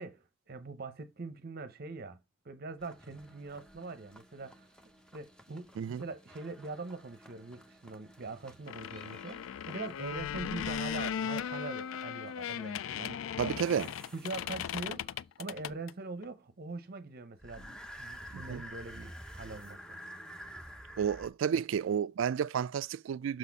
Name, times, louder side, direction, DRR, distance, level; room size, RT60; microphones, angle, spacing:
voice 1, 0.0-2.2 2.4-4.7 5.1-13.6 14.1-20.0, right 3 dB, 50° right, 0.7 m, -43 dB
sound 1, 2.8-14.7 17.4-21.3, equal, 5° left, 0.7 m, -51 dB
sound 2, 8.7-15.9 16.2-16.3, left 8 dB, 70° left, 0.3 m, -37 dB
voice 2, 13.4-13.9 18.3-18.6 21.0-23.4, right 8 dB, 65° right, 0.3 m, -31 dB
6.3 x 4.1 x 4.6 m
head